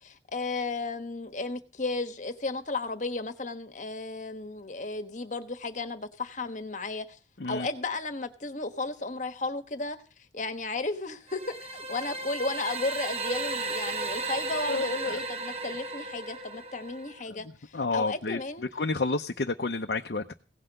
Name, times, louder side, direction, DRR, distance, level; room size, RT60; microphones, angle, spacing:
voice 1, 0.0-7.2 7.5-10.0 10.3-18.6, left 3 dB, 40° left, 1.3 m, -34 dB
sound 1, 11.3-17.2, right 2 dB, 35° right, 1.1 m, -35 dB
voice 2, 14.7-15.2 17.3-18.4 18.7-20.3, left 3 dB, 60° left, 0.7 m, -30 dB
17.0 x 5.8 x 7.8 m
head